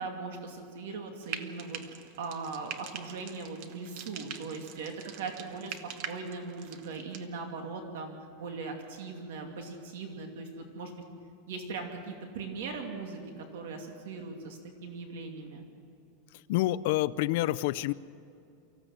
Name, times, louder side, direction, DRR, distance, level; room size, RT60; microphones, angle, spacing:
voice 1, 0.0-5.8 6.1-11.0 11.5-15.6, right 4 dB, 75° right, 4 dB, 2.5 m, -40 dB
Frying (food), 1.2-7.3, right 8 dB, 45° right, 1.1 m, -44 dB
voice 2, 16.5-17.9, left 16 dB, 55° left, 16 dB, 0.5 m, -27 dB
24.5 x 15.5 x 7.6 m, 2.5 s
supercardioid pair, 170°, 0 cm